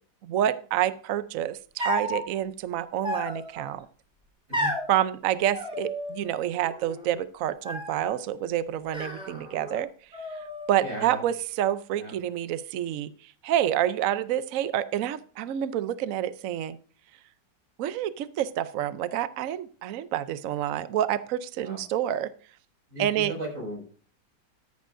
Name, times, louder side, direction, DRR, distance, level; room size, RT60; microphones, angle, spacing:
voice 1, 0.2-3.8 4.9-9.9 10.7-16.8 17.8-22.3 23.0-23.3, right 11 dB, 80° right, 14 dB, 0.7 m, -28 dB
sound 1, 1.8-2.2 3.0-3.7 4.5-4.9 5.5-6.4 6.6-7.2 7.6-8.2 8.9-9.8 10.1-10.9, left 1 dB, ahead, 3.6 m, -33 dB
voice 2, 10.8-11.2 11.9-12.1 21.6-21.8 22.9-23.8, equal, 40° right, -1 dB, 6.1 m, -36 dB
13.5 x 11.0 x 2.6 m, 0.43 s
omnidirectional pair, 2.1 m